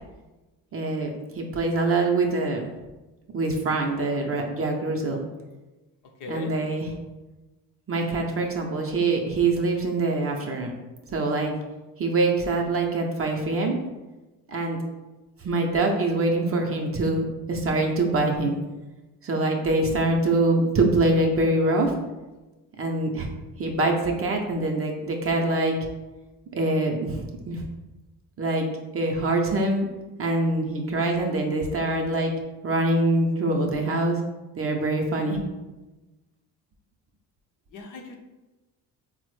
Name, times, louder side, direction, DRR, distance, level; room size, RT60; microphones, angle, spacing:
voice 1, 0.7-2.7 3.3-5.2 6.3-6.9 7.9-10.7 11.1-11.5 12.0-13.8 14.5-14.8 15.4-18.6 19.2-21.9 22.8-23.3 23.6-25.8 26.5-27.6 28.4-28.7 28.9-29.9 30.2-32.3 32.6-34.2 34.6-35.4, right 2 dB, 35° right, 1 dB, 0.5 m, -24 dB
voice 2, 6.2-6.5 37.7-38.2, left 3 dB, 45° left, 3 dB, 0.6 m, -37 dB
3.6 x 2.1 x 3.1 m, 1.1 s
supercardioid pair, 80°, 43 cm